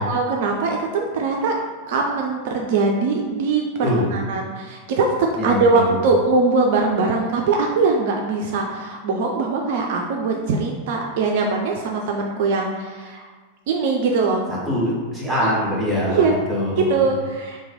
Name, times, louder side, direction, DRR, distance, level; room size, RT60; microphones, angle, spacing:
voice 1, 0.0-1.5 1.9-3.6 4.1-13.3 13.7-14.4 15.2-15.6 16.1-16.4 16.8-17.6, right 4 dB, 50° right, 1 dB, 0.4 m, -21 dB
voice 2, 3.8-4.2 5.4-6.0 14.7-17.1, left 1 dB, 5° left, -6 dB, 1.2 m, -23 dB
3.0 x 2.7 x 3.6 m, 1.4 s
figure-of-eight pair, 90°, 0 cm